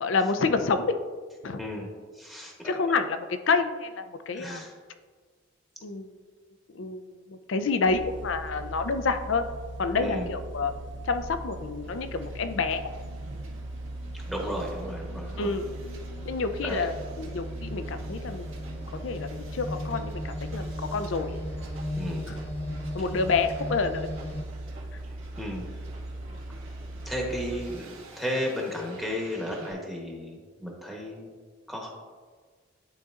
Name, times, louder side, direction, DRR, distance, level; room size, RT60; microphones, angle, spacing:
voice 1, 0.0-1.0 1.4-1.6 2.6-4.7 5.8-6.1 6.7-9.5 9.8-10.7 11.0-12.9 15.4-15.7 16.3-18.5 19.0-21.4 22.3-22.4 22.9-24.1, left 4 dB, 70° left, 9 dB, 0.5 m, -28 dB
voice 2, 1.6-1.9 2.2-2.9 4.3-4.7 10.0-10.3 14.2-15.5 16.6-16.9 22.0-22.3 25.4-25.7 27.0-31.3 31.7-31.9, equal, ahead, -2 dB, 1.0 m, -34 dB
sound 1, 7.9-27.7, right 1 dB, 60° right, 0.5 m, -39 dB
sound 2, 10.7-24.4, left 1 dB, 30° left, 0.8 m, -40 dB
Hiss, 11.8-29.7, right 2 dB, 85° right, 1.7 m, -50 dB
11.5 x 4.1 x 2.5 m, 1.5 s
head